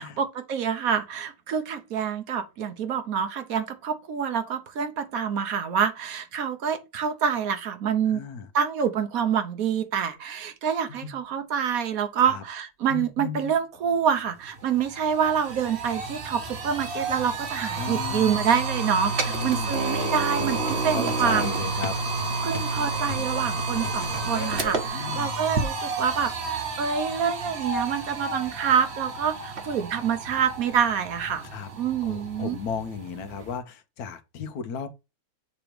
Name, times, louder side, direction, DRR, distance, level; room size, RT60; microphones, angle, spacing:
voice 1, 0.0-8.2 8.5-21.5 22.4-31.5 31.8-32.6, right 7 dB, 70° right, 1.3 m, -27 dB
voice 2, 8.1-8.5 12.2-12.4 17.8-18.4 19.2-19.7 20.9-21.9 24.9-25.3 31.5-31.7 32.0-34.9, left 6 dB, 85° left, 1.3 m, -35 dB
sound 1, 10.1-10.2 10.9-11.4 12.9-13.7 15.9-16.0 16.2-23.4 23.7-24.2, left 7 dB, 60° left, 1.5 m, -44 dB
sound 2, 14.2-14.3 14.6-33.6, right 3 dB, 50° right, 1.2 m, -30 dB
sound 3, 19.0-24.9, left 2 dB, 35° left, 1.3 m, -39 dB
6.9 x 3.0 x 5.0 m
omnidirectional pair, 1.6 m